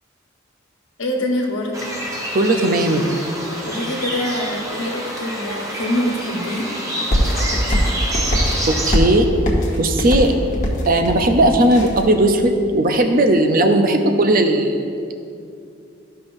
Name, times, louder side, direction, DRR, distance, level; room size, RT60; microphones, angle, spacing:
voice 1, 1.0-1.9 3.6-6.7, left 1 dB, 85° left, 0 dB, 1.2 m, -24 dB
sound 1, 1.7-9.0, right 1 dB, 15° right, 0.8 m, -27 dB
voice 2, 2.3-3.0 8.6-9.3 9.8-10.3 10.9-14.8, right 1 dB, 45° right, 5 dB, 0.6 m, -16 dB
sound 2, 7.1-12.1, equal, 40° left, 1.1 m, -21 dB
13.0 x 5.6 x 2.6 m, 2.5 s
head